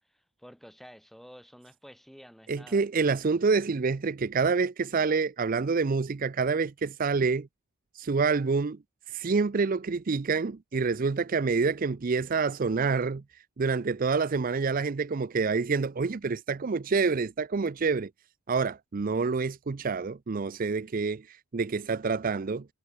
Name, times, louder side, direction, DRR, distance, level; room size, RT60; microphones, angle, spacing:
voice 1, 0.1-2.9, equal, ahead, 4.2 m, -51 dB
voice 2, 2.5-7.5 7.9-8.8 9.1-18.1 18.5-22.7, right 4 dB, 40° right, 0.5 m, -27 dB
head